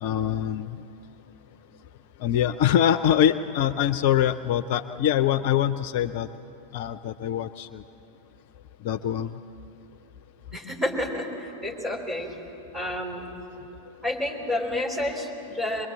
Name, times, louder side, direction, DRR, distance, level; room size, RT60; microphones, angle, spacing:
voice 1, 0.0-0.7 2.2-6.3 6.7-7.8 8.8-9.3, left 10 dB, 50° left, 12 dB, 0.5 m, -24 dB
voice 2, 10.5-12.3 12.7-13.3 14.0-15.9, left 1 dB, 10° right, 0 dB, 3.8 m, -30 dB
24.0 x 21.5 x 7.5 m, 3.0 s
figure-of-eight pair, 90°, 0 cm